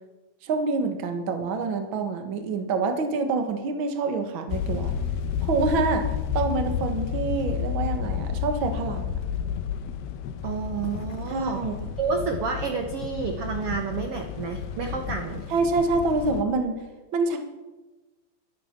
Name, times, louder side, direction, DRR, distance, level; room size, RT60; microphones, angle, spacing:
voice 1, 0.4-4.9 5.4-9.2 11.3-11.9 15.5-16.8 17.1-17.4, right 3 dB, 50° right, 6 dB, 1.5 m, -26 dB
sound 1, 4.5-16.4, left 8 dB, 85° left, 2.8 m, -31 dB
voice 2, 10.4-11.7 12.0-15.4, right 5 dB, 75° right, 4 dB, 1.3 m, -30 dB
13.0 x 12.5 x 6.0 m, 1.2 s
omnidirectional pair, 4.2 m